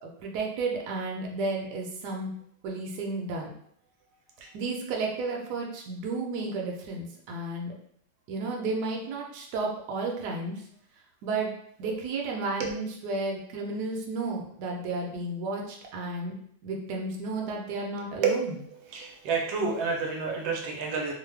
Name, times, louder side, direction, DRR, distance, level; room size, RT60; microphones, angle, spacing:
voice 1, 0.0-2.3 2.6-3.5 4.5-7.7 8.3-10.6 11.2-11.5 11.8-16.3 16.6-18.5, right 3 dB, 70° right, 0 dB, 1.2 m, -32 dB
voice 2, 18.2-18.5 18.8-21.1, right 5 dB, 90° right, 0 dB, 1.3 m, -29 dB
3.1 x 2.1 x 3.2 m, 0.67 s
omnidirectional pair, 2.0 m